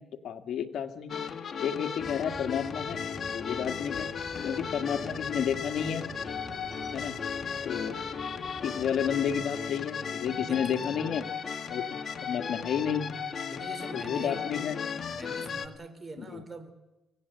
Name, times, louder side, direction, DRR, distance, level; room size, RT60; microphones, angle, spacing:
voice 1, 0.2-1.2 1.6-4.1 4.4-6.1 6.9-7.2 7.6-8.0 8.6-11.3 11.7-13.1 13.9-14.8 16.2-16.4, left 8 dB, 65° left, 7 dB, 1.9 m, -31 dB
sound 1, 1.1-15.7, left 6 dB, 50° left, 1.9 m, -36 dB
sound 2, 2.0-9.5, left 1 dB, 15° left, 2.9 m, -47 dB
voice 2, 10.4-10.9 13.5-14.4 15.1-16.7, right 3 dB, 25° right, 9 dB, 3.8 m, -43 dB
25.5 x 17.5 x 8.1 m, 1.0 s
cardioid pair, 90°, 0 cm